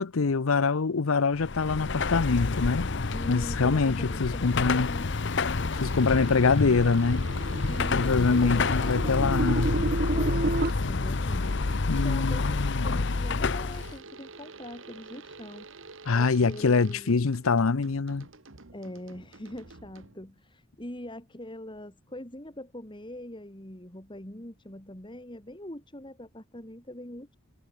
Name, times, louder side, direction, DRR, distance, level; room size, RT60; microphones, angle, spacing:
voice 1, 0.0-2.9 3.3-4.9 5.8-7.3 7.9-9.7 11.9-13.0 16.1-18.3, left 4 dB, 85° left, 0.7 m, -25 dB
Car passing by / Traffic noise roadway noise / Engine, 1.3-14.0, left 3 dB, 55° left, 0.8 m, -28 dB
voice 2, 3.1-5.2 7.7-9.8 10.1-10.6 10.9-11.5 12.0-17.1 18.7-27.4, left 1 dB, 25° left, 2.7 m, -43 dB
sound 1, 5.7-12.3 13.7-20.4, right 3 dB, 70° right, 2.0 m, -49 dB
sound 2, 6.0-10.7, right 2 dB, 45° right, 0.9 m, -31 dB
head